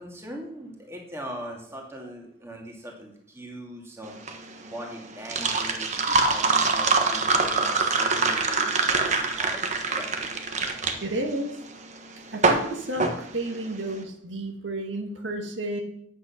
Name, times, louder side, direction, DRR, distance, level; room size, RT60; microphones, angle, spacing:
voice 1, 0.0-4.1 4.6-10.4, equal, 15° right, 0 dB, 2.2 m, -41 dB
sound 1, 4.1-13.9, right 4 dB, 40° right, 1.2 m, -25 dB
voice 2, 11.0-11.6 12.3-15.8, right 1 dB, 80° right, 3 dB, 1.7 m, -31 dB
9.3 x 8.4 x 5.8 m, 0.69 s
head